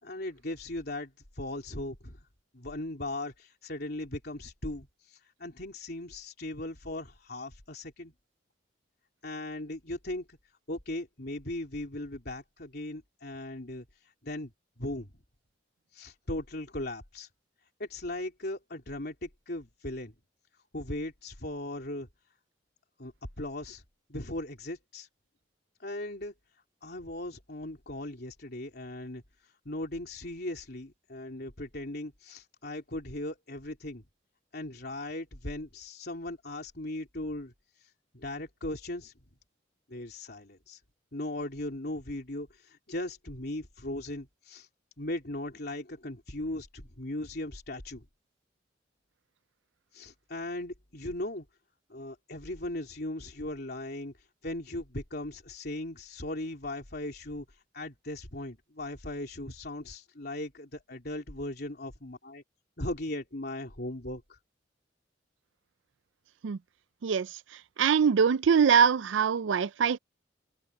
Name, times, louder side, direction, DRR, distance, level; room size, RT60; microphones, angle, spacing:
voice 1, 0.0-1.1 1.4-2.2 2.5-8.1 9.2-10.4 10.7-13.9 14.2-14.5 14.8-15.1 15.9-17.3 17.8-20.1 20.7-22.1 23.0-23.8 24.1-25.1 25.8-26.3 26.8-29.2 29.7-34.0 34.5-37.5 38.1-39.1 39.9-40.8 41.1-44.7 45.0-48.1 49.9-51.4 51.9-54.1 54.4-57.5 57.7-62.4 62.8-64.4, left 1 dB, 55° left, 3.4 m, -38 dB
voice 2, 67.8-70.0, right 7 dB, 80° right, 0.4 m, -23 dB
open air
head